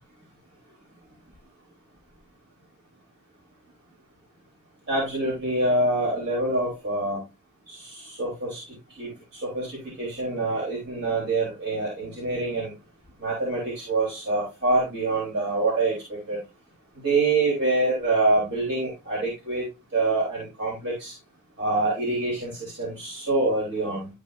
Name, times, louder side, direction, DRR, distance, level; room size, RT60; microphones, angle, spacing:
voice 1, 4.9-7.2 7.7-8.6 9.0-9.1 9.4-12.7 13.2-16.4 17.0-19.7 19.9-21.1 21.6-24.1, right 2 dB, 60° right, -5 dB, 3.7 m, -26 dB
12.0 x 5.3 x 2.6 m, 0.25 s
head